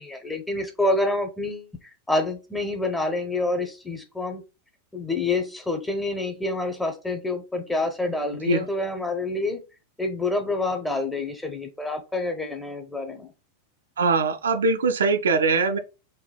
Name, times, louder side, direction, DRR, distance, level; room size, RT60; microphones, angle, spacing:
voice 1, 0.0-1.7 2.1-4.4 4.9-9.6 10.0-13.3, left 2 dB, 5° left, 0.5 m, -27 dB
voice 2, 14.0-15.8, right 4 dB, 65° right, 0.3 m, -22 dB
3.4 x 2.3 x 2.2 m
figure-of-eight pair, 90°, 0 cm